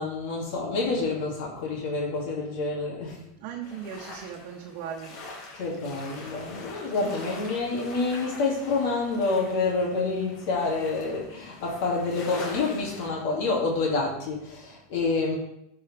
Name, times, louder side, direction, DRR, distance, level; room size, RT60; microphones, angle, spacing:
voice 1, 0.0-3.2 5.5-15.4, left 3 dB, 65° left, -3 dB, 2.5 m, -28 dB
voice 2, 3.4-5.2 7.0-7.2, right 8 dB, 60° right, -1 dB, 1.1 m, -38 dB
sound 1, 3.6-13.1, left 2 dB, 45° left, 2.4 m, -44 dB
11.5 x 4.9 x 3.5 m, 0.81 s
hypercardioid pair, 110°, 0 cm